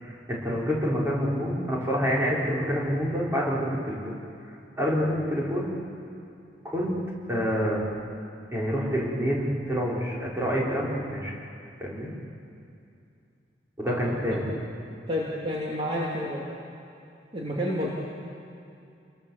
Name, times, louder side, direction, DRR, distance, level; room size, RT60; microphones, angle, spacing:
voice 1, 0.0-4.1 4.8-5.7 6.6-7.0 7.3-7.8 8.5-11.3 11.8-12.1 13.8-14.4, equal, 15° right, -5 dB, 5.0 m, -27 dB
voice 2, 13.9-14.4 15.1-16.4 17.3-17.9, equal, 35° right, -5 dB, 2.9 m, -30 dB
29.5 x 22.0 x 7.4 m, 2.6 s
head